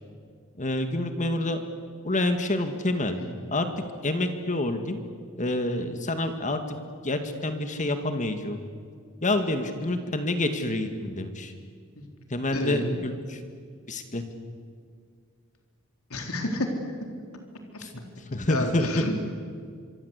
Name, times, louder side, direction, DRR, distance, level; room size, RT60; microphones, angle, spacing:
voice 1, 0.6-1.6 2.0-3.2 3.5-3.7 4.0-5.0 5.4-6.6 7.0-8.6 9.2-11.5 12.3-13.4 13.9-14.2 17.8-18.0 18.3-19.0, left 1 dB, 35° left, 7 dB, 2.0 m, -27 dB
voice 2, 12.5-13.0 16.1-16.7 18.5-19.1, left 1 dB, 85° left, 3 dB, 3.8 m, -29 dB
26.5 x 23.5 x 8.3 m, 2.1 s
head